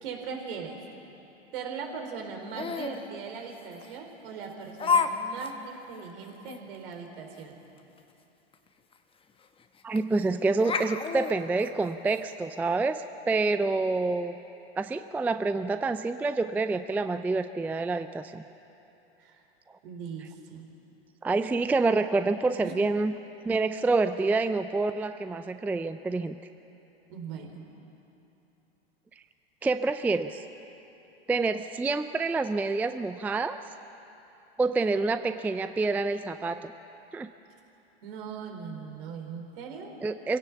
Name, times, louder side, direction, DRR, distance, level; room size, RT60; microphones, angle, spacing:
voice 1, 0.0-0.8 1.5-7.6 19.2-19.4 19.8-20.7 22.6-22.8 27.1-27.6 38.0-39.9, right 6 dB, 60° right, 3 dB, 3.9 m, -39 dB
Laughter, 2.5-3.0 3.8-3.9 4.8-5.1 5.4-5.5 6.0-6.1 6.5-6.6 8.5-8.6 8.9-9.0 10.0-10.2 10.6-12.2, left 5 dB, 15° left, 1.1 m, -28 dB
voice 2, 9.8-14.3 14.8-18.4 21.2-23.1 23.4-26.4 29.6-30.4 31.3-33.6 34.6-36.7 37.1-37.3 40.0-40.4, right 3 dB, 5° right, 10 dB, 0.4 m, -27 dB
24.5 x 17.0 x 7.1 m, 3.0 s
hypercardioid pair, 100°, 31 cm